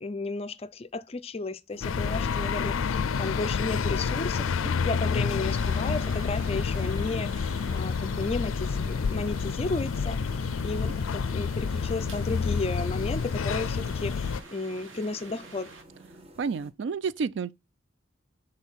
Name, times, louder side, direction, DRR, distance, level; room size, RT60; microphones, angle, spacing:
voice 1, 0.0-10.2 10.6-15.7, left 3 dB, 30° left, 0.4 m, -33 dB
sound 1, 1.7-16.7, right 1 dB, 30° right, 0.9 m, -50 dB
sound 2, 1.8-14.4, left 5 dB, 90° left, 0.4 m, -29 dB
sound 3, 5.5-15.8, right 4 dB, 75° right, 1.1 m, -49 dB
voice 2, 16.4-17.5, right 5 dB, 60° right, 0.3 m, -30 dB
6.3 x 3.8 x 5.5 m
head